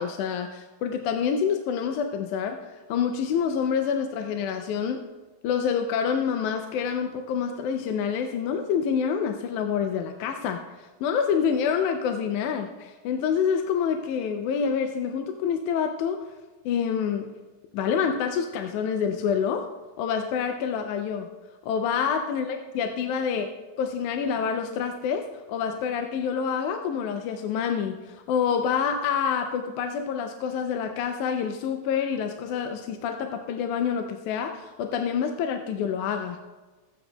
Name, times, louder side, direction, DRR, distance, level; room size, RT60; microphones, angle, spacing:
voice 1, 0.0-5.0 5.4-16.3 16.7-17.3 17.7-19.7 20.0-21.3 21.6-23.5 23.8-36.4, left 7 dB, 80° left, 6 dB, 2.0 m, -27 dB
14.5 x 9.6 x 2.2 m, 1.2 s
omnidirectional pair, 3.5 m